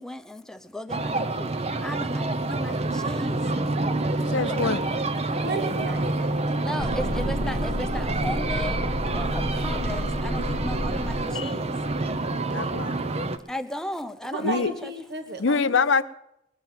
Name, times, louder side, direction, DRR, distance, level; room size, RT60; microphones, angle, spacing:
voice 1, 0.0-1.5 1.8-3.6 4.3-4.8 6.6-8.8 9.1-11.7 13.5-14.9, left 1 dB, 5° left, 7 dB, 0.8 m, -36 dB
sound 1, 0.9-13.4, right 2 dB, 35° right, 0.7 m, -28 dB
voice 2, 4.3-4.8 11.3-11.5 12.5-13.0 14.4-14.7 15.4-16.0, left 4 dB, 75° left, 13 dB, 0.7 m, -24 dB
voice 3, 5.3-6.7 7.0-7.2 14.2-15.7, right 2 dB, 60° right, 6 dB, 1.5 m, -34 dB
sound 2, 6.8-11.8 12.2-12.3, left 1 dB, 40° left, 0.7 m, -31 dB
20.5 x 7.6 x 7.4 m, 0.80 s
head